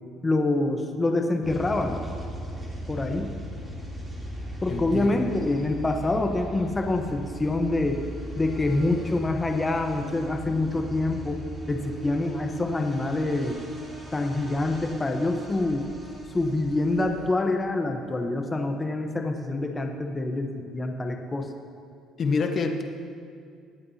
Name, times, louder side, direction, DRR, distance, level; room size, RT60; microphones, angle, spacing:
voice 1, 0.2-2.0 2.9-3.3 4.6-8.0 8.4-11.4 11.7-13.6 14.1-15.8 16.3-21.5, left 2 dB, 20° left, 4 dB, 0.9 m, -26 dB
sound 1, 1.4-17.3, equal, 15° right, 3.0 m, -38 dB
voice 2, 4.7-5.2 22.2-22.8, left 4 dB, 40° left, 4 dB, 1.2 m, -27 dB
22.5 x 8.6 x 2.8 m, 2.3 s
cardioid pair, 105°, 0 cm